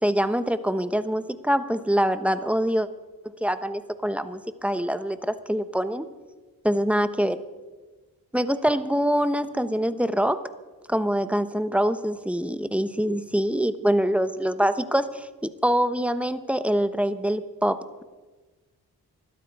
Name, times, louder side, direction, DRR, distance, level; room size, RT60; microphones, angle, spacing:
voice 1, 0.0-2.9 3.4-6.0 6.6-7.4 8.3-10.4 10.9-15.3 15.6-18.0, equal, 5° right, 11 dB, 1.0 m, -24 dB
20.5 x 13.0 x 4.8 m, 1.3 s
cardioid pair, 60°, 39 cm